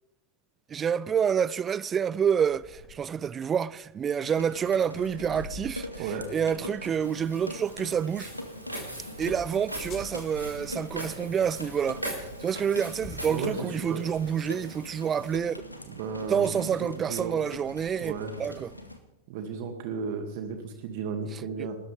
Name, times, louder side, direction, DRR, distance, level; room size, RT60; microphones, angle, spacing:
voice 1, 0.7-8.3 9.2-15.6 16.3-18.1 18.4-18.7 21.3-21.7, right 7 dB, 20° right, 0.5 m, -28 dB
sound 1, 2.4-18.2, left 4 dB, 35° left, 4.8 m, -53 dB
sound 2, 4.2-19.0, left 1 dB, 85° left, 1.6 m, -42 dB
voice 2, 6.0-6.3 13.2-14.0 15.9-17.4 18.0-18.3 19.3-21.8, right 5 dB, 50° right, 2.3 m, -34 dB
Walk footsteps, 7.0-15.3, right 1 dB, 85° right, 4.4 m, -42 dB
29.0 x 13.5 x 3.5 m
figure-of-eight pair, 90°, 0 cm